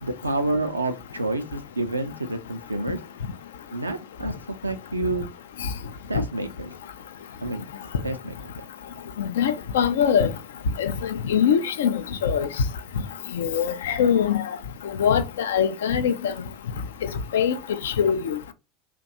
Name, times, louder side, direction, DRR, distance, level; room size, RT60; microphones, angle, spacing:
voice 1, 0.0-3.0 3.7-5.3 6.1-6.7 7.4-8.7, right 2 dB, 85° right, 0.4 m, -29 dB
voice 2, 9.2-10.3 10.8-12.5 13.3-14.4 15.0-16.3 17.3-17.5 17.8-18.4, left 8 dB, 65° left, 0.3 m, -22 dB
2.6 x 2.1 x 2.8 m
figure-of-eight pair, 75°, 0 cm